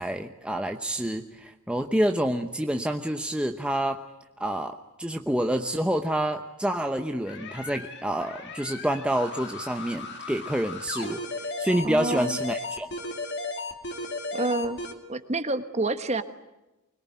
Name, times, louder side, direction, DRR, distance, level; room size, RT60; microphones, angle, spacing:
voice 1, 0.0-4.0 4.4-12.9, right 1 dB, 5° right, 5 dB, 0.9 m, -28 dB
sound 1, 7.3-14.9, left 3 dB, 50° left, 2.5 m, -35 dB
voice 2, 11.8-12.4 14.3-14.8 15.1-16.2, right 2 dB, 30° right, 9 dB, 1.3 m, -28 dB
24.5 x 22.0 x 9.4 m, 1.0 s
head